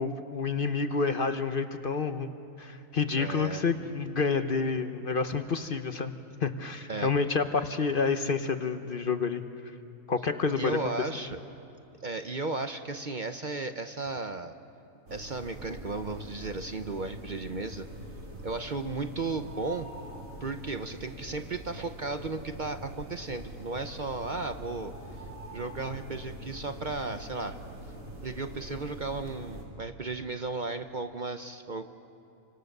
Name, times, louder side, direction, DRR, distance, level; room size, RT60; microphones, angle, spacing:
voice 1, 0.0-2.3 2.6-6.1 6.4-9.4 10.1-10.8, left 4 dB, 45° left, 9 dB, 1.0 m, -29 dB
voice 2, 3.2-3.7 6.9-7.1 10.6-11.4 12.0-14.5 15.1-17.9 18.4-19.9 20.4-24.9 25.5-27.6 28.2-31.9, right 3 dB, 40° right, 8 dB, 0.8 m, -35 dB
sound 1, 15.1-29.6, right 1 dB, 75° right, 4.6 m, -44 dB
29.0 x 25.0 x 6.7 m, 2.7 s
omnidirectional pair, 1.4 m